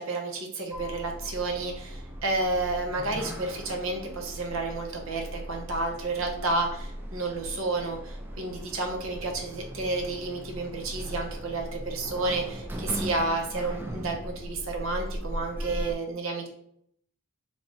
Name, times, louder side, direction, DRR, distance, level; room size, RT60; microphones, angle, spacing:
voice 1, 0.0-6.8 7.1-16.5, right 2 dB, 75° right, 2 dB, 0.8 m, -31 dB
Sliding door, 0.7-15.9, equal, 10° right, 0.3 m, -38 dB
3.4 x 2.3 x 3.9 m, 0.69 s
head